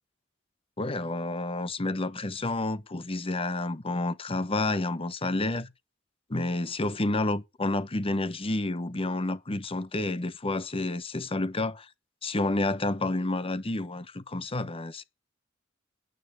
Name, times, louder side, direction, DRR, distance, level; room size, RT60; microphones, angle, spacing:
voice 1, 0.8-5.7 6.3-11.9 12.2-15.0, left 2 dB, 30° left, 0.9 m, -30 dB
9.4 x 9.1 x 8.0 m
head